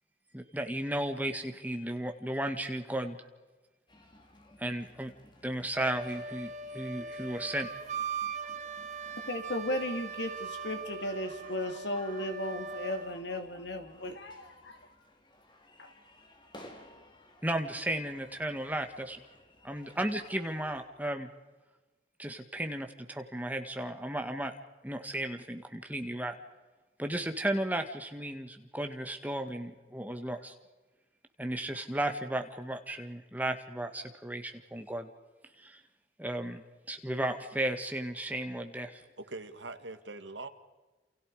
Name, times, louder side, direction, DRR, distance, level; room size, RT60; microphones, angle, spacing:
voice 1, 0.3-3.2 4.6-5.1 5.4-7.7 17.4-19.2 19.6-21.3 22.2-24.5 24.8-26.3 27.0-30.5 31.4-35.1 35.6-35.8 36.2-39.0, right 1 dB, 10° right, 6 dB, 1.8 m, -34 dB
sound 1, 3.9-20.8, left 1 dB, 25° left, 2.8 m, -56 dB
Wind instrument woodwind instrument, 5.7-13.2, right 5 dB, 40° right, 1.3 m, -40 dB
voice 2, 9.3-14.8 15.8-15.9, left 1 dB, 70° left, 6 dB, 3.0 m, -35 dB
voice 3, 39.2-40.5, right 2 dB, 85° right, 9 dB, 2.0 m, -42 dB
29.0 x 28.5 x 5.0 m, 1.2 s
head